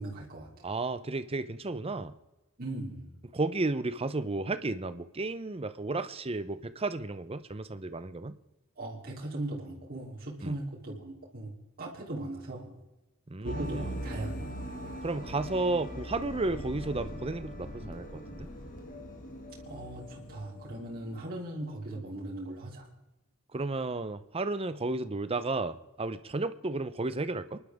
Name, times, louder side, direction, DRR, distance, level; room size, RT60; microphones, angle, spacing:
voice 1, 0.0-0.5 2.6-3.1 8.8-11.5 11.8-12.8 13.4-14.6 19.7-22.9, right 1 dB, 45° right, -5 dB, 3.4 m, -39 dB
voice 2, 0.6-2.2 3.3-8.3 10.4-10.5 13.3-14.0 15.0-18.5 23.5-27.6, right 2 dB, 25° right, 12 dB, 0.7 m, -33 dB
sound 1, 13.4-21.2, equal, 40° left, 2.4 m, -41 dB
28.5 x 11.5 x 3.6 m, 1.0 s
head